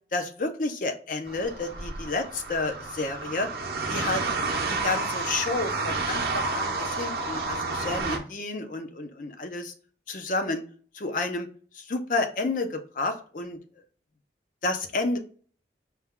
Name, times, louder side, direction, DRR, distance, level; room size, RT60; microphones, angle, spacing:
voice 1, 0.1-3.5 3.9-4.2 4.7-9.7 10.1-10.6 10.9-11.5 11.7-13.6 14.6-15.2, left 3 dB, 45° left, 6 dB, 0.5 m, -30 dB
sound 1, 1.3-8.2, right 3 dB, 60° right, 0.7 m, -30 dB
4.2 x 2.3 x 3.6 m, 0.43 s
head